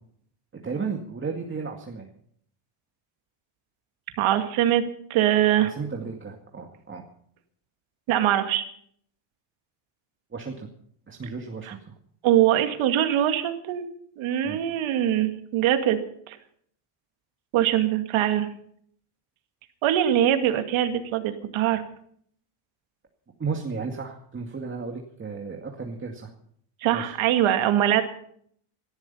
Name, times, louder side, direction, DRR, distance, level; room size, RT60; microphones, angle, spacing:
voice 1, 0.5-2.1 5.6-7.0 10.3-10.7 11.1-11.8 14.4-14.6 23.4-26.3 26.9-27.1, right 5 dB, 25° right, 1 dB, 2.2 m, -34 dB
voice 2, 4.2-4.8 5.1-5.7 8.1-8.6 11.7-11.8 12.2-13.9 14.2-16.0 16.3-16.4 17.5-18.5 19.8-21.8 26.8-28.0, right 11 dB, 75° right, 7 dB, 2.2 m, -22 dB
18.5 x 13.0 x 5.6 m, 0.64 s
cardioid pair, 115°, 48 cm